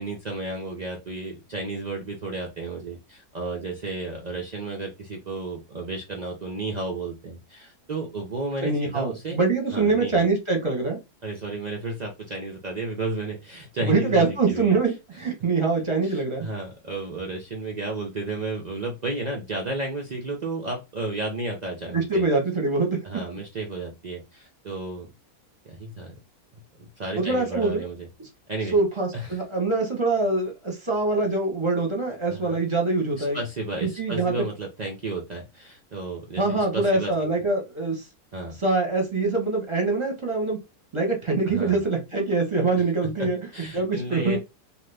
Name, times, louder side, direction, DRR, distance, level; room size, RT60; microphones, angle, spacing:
voice 1, 0.0-9.4 9.7-10.1 11.2-14.8 16.0-22.2 23.0-25.1 25.6-26.1 27.0-28.1 28.5-28.8 29.1-29.4 32.3-32.5 33.2-37.1 38.3-38.6 41.5-41.8 43.2-43.3 43.5-44.4, right 2 dB, 80° right, 0.3 m, -32 dB
voice 2, 8.6-11.0 13.8-16.5 21.9-23.0 27.2-27.8 28.7-33.4 33.8-34.4 36.4-38.0 38.6-40.6 40.9-43.4 43.7-44.4, right 3 dB, 25° right, 0.7 m, -24 dB
2.9 x 2.4 x 3.3 m
omnidirectional pair, 1.7 m